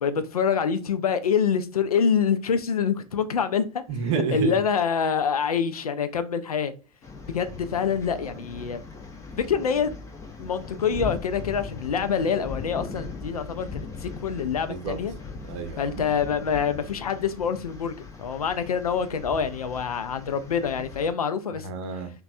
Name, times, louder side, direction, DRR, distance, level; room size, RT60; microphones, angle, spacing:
voice 1, 0.0-3.8 4.3-6.7 7.3-8.8 9.4-9.9 10.4-15.1 15.8-17.9 18.2-21.7, left 6 dB, 75° left, 0.4 m, -26 dB
voice 2, 3.9-4.5 14.7-15.0 15.4-16.0 21.6-22.1, right 5 dB, 50° right, 0.6 m, -29 dB
sound 1, 7.0-21.1, left 4 dB, 15° left, 0.5 m, -39 dB
3.0 x 2.2 x 2.6 m
figure-of-eight pair, 85°, 19 cm